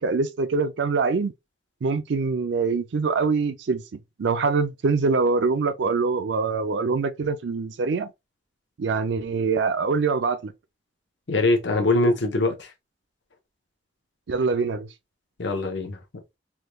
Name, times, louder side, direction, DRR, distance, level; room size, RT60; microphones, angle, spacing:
voice 1, 0.0-1.3 1.8-3.8 4.2-8.1 8.8-10.5 14.3-14.9, right 4 dB, 75° right, 0.4 m, -24 dB
voice 2, 11.3-12.7 15.4-16.0, left 2 dB, 80° left, 0.9 m, -22 dB
3.5 x 2.3 x 3.1 m
head